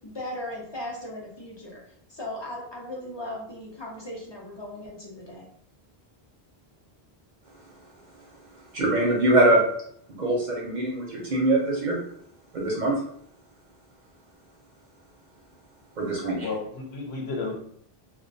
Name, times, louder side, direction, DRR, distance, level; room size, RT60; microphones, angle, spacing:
voice 1, 0.0-1.8 2.1-5.5, left 1 dB, 35° left, -3 dB, 0.4 m, -37 dB
voice 2, 8.7-9.6 10.1-12.0 12.5-13.0 16.0-16.5, right 1 dB, 55° right, -2 dB, 0.6 m, -23 dB
voice 3, 16.2-17.5, left 3 dB, 80° left, 1 dB, 0.9 m, -32 dB
2.2 x 2.2 x 2.5 m, 0.67 s
omnidirectional pair, 1.0 m